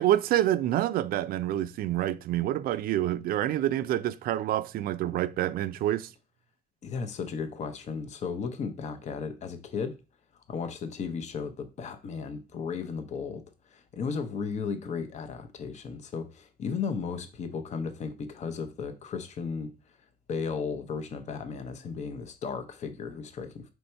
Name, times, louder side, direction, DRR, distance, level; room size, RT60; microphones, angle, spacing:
voice 1, 0.0-6.1, right 13 dB, 60° right, 0.4 m, -27 dB
voice 2, 6.8-10.0 10.5-19.7 20.3-23.7, left 5 dB, 45° left, 0.7 m, -35 dB
4.5 x 2.7 x 4.3 m
cardioid pair, 110°, 17 cm